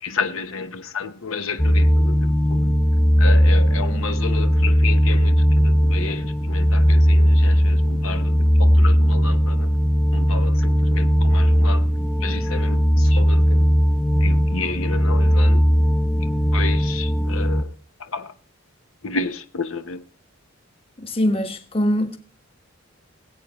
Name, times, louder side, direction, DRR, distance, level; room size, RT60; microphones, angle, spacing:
voice 1, 0.0-2.7 3.2-9.8 10.1-11.9 12.2-13.7 14.2-15.7 16.2-17.7 18.0-18.3 19.0-20.0, left 4 dB, 75° left, 0.9 m, -31 dB
sound 1, 1.6-17.6, equal, 5° left, 0.5 m, -18 dB
voice 2, 21.0-22.2, equal, 25° left, 1.3 m, -22 dB
21.5 x 8.6 x 3.0 m
head